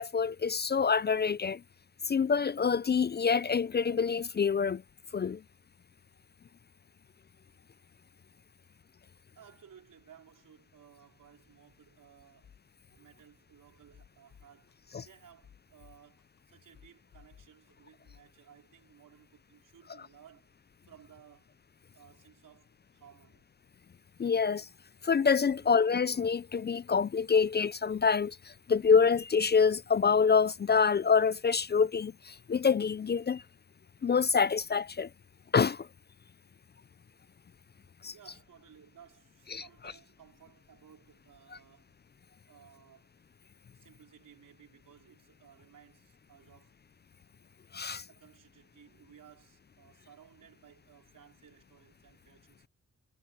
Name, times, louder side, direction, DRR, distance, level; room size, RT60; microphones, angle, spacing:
voice 1, 0.0-1.6 2.1-4.8 5.1-5.4 14.9-15.1 24.2-24.7 25.0-33.4 34.0-35.1 35.5-35.9 38.0-38.1 39.5-39.6 47.7-48.0, left 6 dB, 30° left, 0.4 m, -26 dB
voice 2, 9.4-12.6 12.9-14.8 15.0-20.5 20.8-21.6 21.9-23.5 25.5-25.7 38.1-42.0 42.5-43.1 43.7-46.8 48.1-52.7, right 8 dB, 75° right, 4.1 m, -58 dB
sound 1, 12.4-12.6 13.2-13.3 13.8-14.7 15.3-16.4 16.7-17.7 18.0-18.3, left 8 dB, 75° left, 3.9 m, -57 dB
cardioid pair, 55°, 32 cm